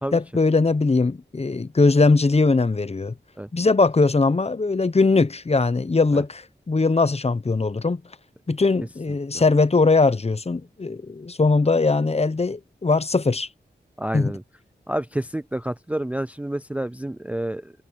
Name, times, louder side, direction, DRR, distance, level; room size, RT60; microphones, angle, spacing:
voice 1, 0.1-3.1 3.5-8.0 8.5-13.5 14.1-14.3, left 3 dB, 35° left, 0.8 m, -20 dB
voice 2, 14.0-14.4 14.9-17.7, right 1 dB, 10° right, 0.4 m, -29 dB
wide cardioid pair, 90°, 18 cm